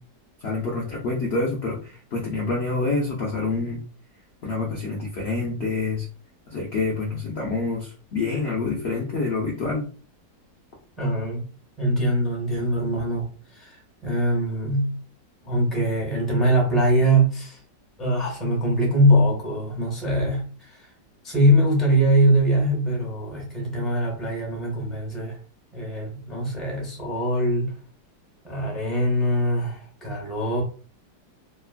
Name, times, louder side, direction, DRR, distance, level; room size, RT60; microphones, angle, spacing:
voice 1, 0.4-3.8 4.4-6.1 6.5-9.8, left 3 dB, 75° left, -3 dB, 0.5 m, -27 dB
voice 2, 11.0-11.5 11.8-15.0 15.4-17.6 18.0-20.9 21.2-25.4 25.7-27.7 28.4-30.6, right 1 dB, ahead, -2 dB, 0.5 m, -22 dB
2.9 x 2.3 x 2.4 m, 0.39 s
omnidirectional pair, 1.9 m